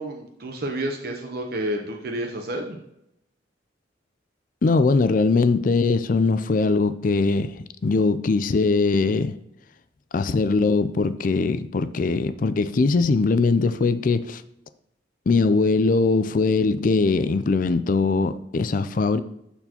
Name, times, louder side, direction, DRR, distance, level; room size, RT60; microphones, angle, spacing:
voice 1, 0.0-2.8, right 1 dB, 55° right, 0.7 m, -30 dB
voice 2, 4.6-7.5 7.8-9.3 10.1-14.4 15.3-19.2, left 3 dB, 45° left, 0.4 m, -21 dB
12.5 x 4.3 x 2.9 m
head